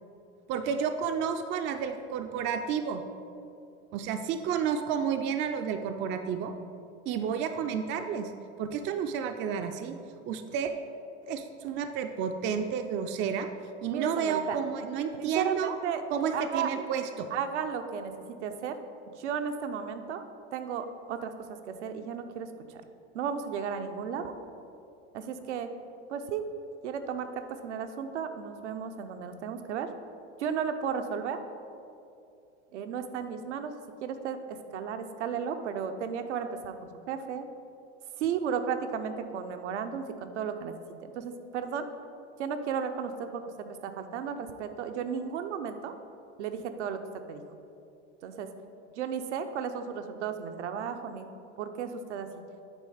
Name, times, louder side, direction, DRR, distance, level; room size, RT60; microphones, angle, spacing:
voice 1, 0.5-3.1 3.9-6.5 7.1-8.3 8.6-10.0 10.3-10.7 11.3-13.5 13.8-15.8 16.1-17.3, right 7 dB, 35° right, 6 dB, 0.4 m, -31 dB
voice 2, 13.9-14.6 15.2-16.0 16.3-16.7 17.3-18.1 18.4-18.8 19.2-20.2 20.5-22.8 23.1-24.3 25.1-25.7 26.1-26.4 26.8-29.9 30.4-31.4 32.7-33.7 34.0-36.7 37.1-37.5 38.2-40.7 41.0-41.9 42.4-45.9 46.4-47.0 47.3-47.4 48.2-48.5 49.0-51.3 51.6-52.3, right 7 dB, 80° right, 8 dB, 0.7 m, -34 dB
8.9 x 3.8 x 5.0 m, 2.6 s
hypercardioid pair, 95°, 35 cm